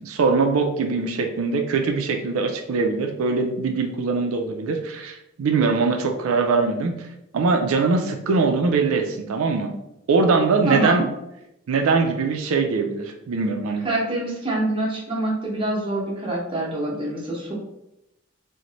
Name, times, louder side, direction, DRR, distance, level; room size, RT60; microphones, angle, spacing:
voice 1, 0.0-7.1 7.3-9.7 10.1-11.0 11.7-13.8, right 4 dB, 85° right, 4 dB, 0.4 m, -22 dB
voice 2, 10.7-11.0 13.8-17.5, right 1 dB, 25° right, -4 dB, 0.8 m, -25 dB
3.0 x 2.1 x 3.8 m, 0.86 s
head